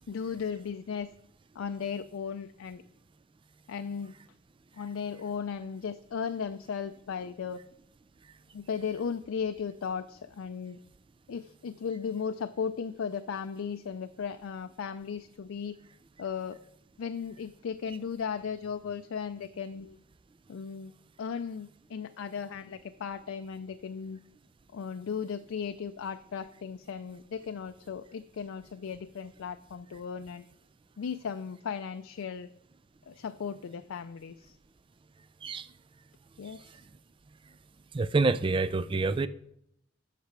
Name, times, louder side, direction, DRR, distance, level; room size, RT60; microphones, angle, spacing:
voice 1, 0.1-1.1 1.6-2.8 3.7-4.1 4.7-7.6 8.5-10.8 11.3-15.8 16.2-16.6 17.0-20.0 20.5-20.9 21.2-24.2 24.7-30.5 31.0-32.5 33.1-34.6 36.4-36.8, left 6 dB, 85° left, 0.4 m, -36 dB
voice 2, 37.9-39.3, right 3 dB, 25° right, 0.4 m, -27 dB
8.2 x 6.7 x 6.0 m
head